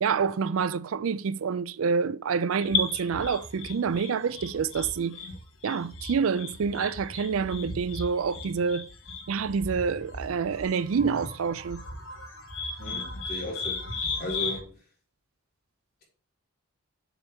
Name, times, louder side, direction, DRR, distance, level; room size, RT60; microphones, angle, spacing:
voice 1, 0.0-5.2 5.6-8.8 9.3-11.8, right 6 dB, 75° right, 0.4 m, -27 dB
sound 1, 2.6-14.6, left 3 dB, 70° left, 1.4 m, -36 dB
voice 2, 12.8-13.9 14.2-14.7, left 1 dB, 45° left, 4.0 m, -36 dB
7.1 x 6.9 x 3.5 m
head